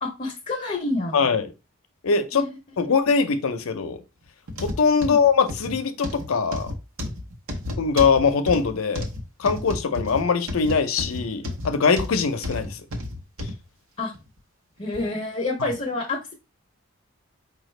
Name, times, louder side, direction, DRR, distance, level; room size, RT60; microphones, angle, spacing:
voice 1, 0.0-1.2 2.3-2.5 5.0-5.2 14.0-14.1 14.8-16.3, left 2 dB, 35° left, 0.6 m, -28 dB
voice 2, 1.1-1.5 2.0-2.5 2.8-4.0 4.6-6.7 7.8-9.1 9.4-12.8 15.6-15.7, left 5 dB, 85° left, 0.5 m, -22 dB
sound 1, 4.5-13.6 14.1-14.3 14.9-15.0, left 1 dB, 85° right, 0.8 m, -32 dB
4.9 x 2.3 x 3.2 m
head